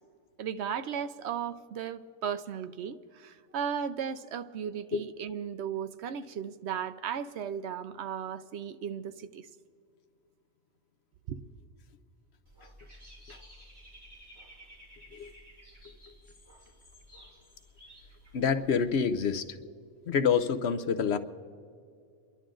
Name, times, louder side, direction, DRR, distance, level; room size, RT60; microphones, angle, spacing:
voice 1, 0.4-9.5 11.3-11.4, right 8 dB, 65° right, 0.8 m, -36 dB
Dog / Bird, 12.5-19.5, equal, 20° right, 4.7 m, -54 dB
voice 2, 18.3-19.4 20.1-21.2, left 6 dB, 65° left, 1.0 m, -27 dB
28.5 x 11.5 x 3.8 m
omnidirectional pair, 1.3 m